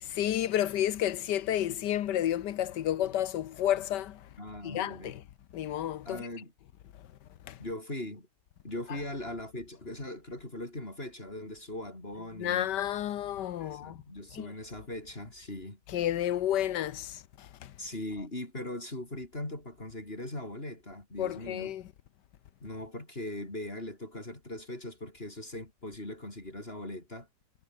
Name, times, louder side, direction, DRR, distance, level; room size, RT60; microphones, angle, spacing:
voice 1, 0.0-4.3 4.6-5.2 5.5-6.3 7.4-7.6 12.4-14.0 14.3-14.5 15.9-17.7 21.2-21.9, left 11 dB, 70° left, 1.5 m, -31 dB
voice 2, 4.4-5.1 6.1-6.5 7.6-8.3 8.6-12.7 13.6-15.8 17.8-21.7 22.6-27.3, left 1 dB, 30° left, 5.4 m, -40 dB
omnidirectional pair, 2.0 m